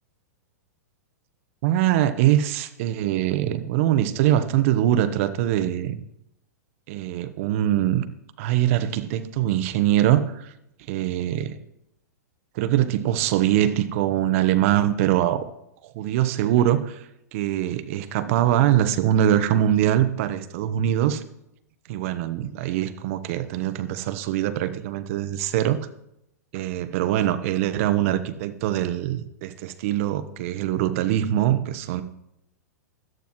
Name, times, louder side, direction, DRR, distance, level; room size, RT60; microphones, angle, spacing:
voice 1, 1.6-6.0 6.9-8.0 8.4-10.5 10.9-11.6 12.5-15.5 15.9-17.0 17.3-21.2 21.9-25.8 26.5-32.0, right 12 dB, 50° right, 12 dB, 1.0 m, -23 dB
16.5 x 11.5 x 3.1 m, 0.81 s
hypercardioid pair, 110°, 9 cm